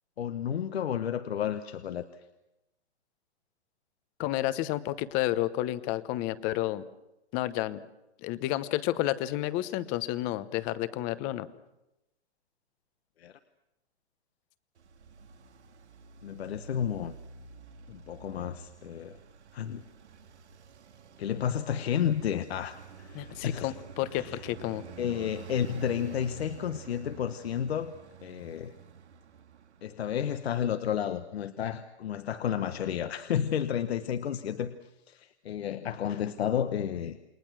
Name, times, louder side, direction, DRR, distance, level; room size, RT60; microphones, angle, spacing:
voice 1, 0.2-2.0 13.2-13.3 16.2-17.1 17.9-19.2 19.5-19.8 21.2-23.7 24.1-24.4 25.0-27.9 28.2-28.7 29.8-34.7 35.1-37.2, left 9 dB, 70° left, 9 dB, 1.3 m, -31 dB
voice 2, 4.2-6.8 7.3-7.8 8.2-11.5 23.1-24.8, left 15 dB, 25° left, 15 dB, 0.9 m, -30 dB
Traffic noise roadway noise, 14.8-30.2, right 6 dB, 85° right, 2.2 m, -49 dB
29.0 x 21.5 x 6.2 m, 0.92 s
hypercardioid pair, 150°, 33 cm